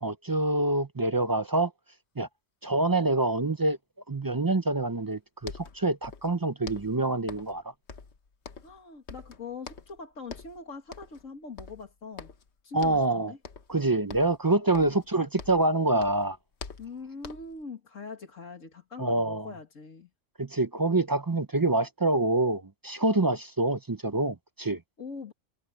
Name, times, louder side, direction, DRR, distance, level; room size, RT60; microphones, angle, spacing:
voice 1, 0.0-1.7 2.2-2.3 2.6-3.8 4.1-7.6 12.7-13.3 13.7-16.4 19.0-19.5 20.4-24.8, right 2 dB, 30° right, 0.4 m, -26 dB
sound 1, 5.1-5.2 5.4-6.4 6.6-7.6 7.9-8.8 9.1-10.0 10.3-10.6 10.9-11.3 11.6-12.5 12.8-13.1 13.4-13.8 14.1-15.7 16.0-17.6, left 5 dB, 60° left, 1.5 m, -45 dB
voice 2, 8.6-12.3 12.6-13.4 14.8-15.0 16.8-20.1 25.0-25.3, left 4 dB, 85° left, 2.4 m, -42 dB
omnidirectional pair, 1.3 m